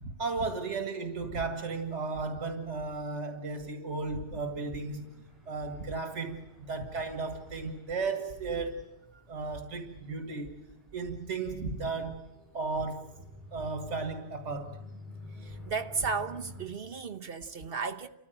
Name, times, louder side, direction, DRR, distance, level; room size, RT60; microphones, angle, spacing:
voice 1, 0.0-5.1 5.5-8.8 9.3-10.5 10.9-12.2 12.5-13.1 13.5-14.8, right 4 dB, 90° right, 2.1 m, -34 dB
sound 1, 4.3-16.6, left 2 dB, ahead, 6.8 m, -51 dB
voice 2, 15.4-18.1, right 5 dB, 55° right, 1.2 m, -34 dB
30.0 x 14.5 x 9.0 m
omnidirectional pair, 1.2 m